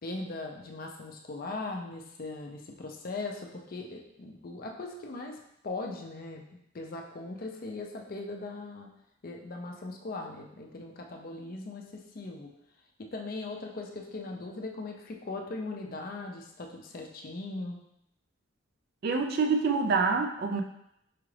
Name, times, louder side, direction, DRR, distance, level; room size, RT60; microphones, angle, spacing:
voice 1, 0.0-5.4 5.6-6.4 6.7-8.9 9.2-12.5 13.0-17.8, left 2 dB, 45° left, 1 dB, 0.5 m, -39 dB
voice 2, 19.0-20.6, right 4 dB, 50° right, 4 dB, 0.3 m, -26 dB
4.8 x 2.4 x 3.2 m, 0.79 s
head